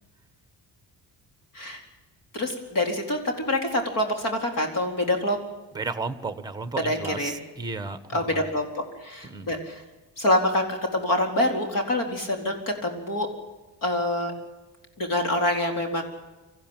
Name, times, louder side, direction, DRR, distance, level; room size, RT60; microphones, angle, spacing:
voice 1, 2.3-5.4 6.8-7.4 8.1-8.7 9.0-9.8 10.2-13.3 13.8-14.3 15.0-16.0, left 1 dB, 50° left, 3 dB, 4.3 m, -26 dB
voice 2, 5.7-8.4 9.3-9.5, right 3 dB, 10° right, 11 dB, 1.2 m, -33 dB
25.5 x 15.0 x 9.0 m, 1.2 s
cardioid pair, 165°, 41 cm